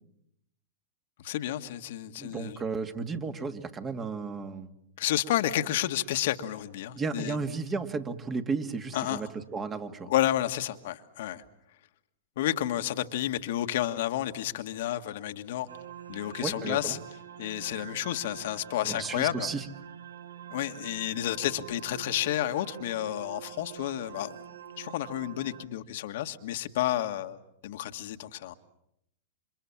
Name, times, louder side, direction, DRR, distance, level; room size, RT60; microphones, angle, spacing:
voice 1, 1.2-2.6 5.0-7.3 8.9-9.2 10.1-11.4 12.4-15.7 16.1-17.0 17.4-19.5 20.5-24.4 24.8-27.4 27.6-28.5, left 13 dB, 65° left, 7 dB, 1.6 m, -31 dB
voice 2, 2.2-4.7 6.9-10.1 16.4-17.0 18.8-19.7, right 4 dB, 25° right, 7 dB, 2.4 m, -34 dB
sound 1, 15.7-25.7, right 10 dB, 90° right, 1.6 m, -46 dB
29.5 x 26.5 x 7.3 m, 0.78 s
hypercardioid pair, 115°, 0 cm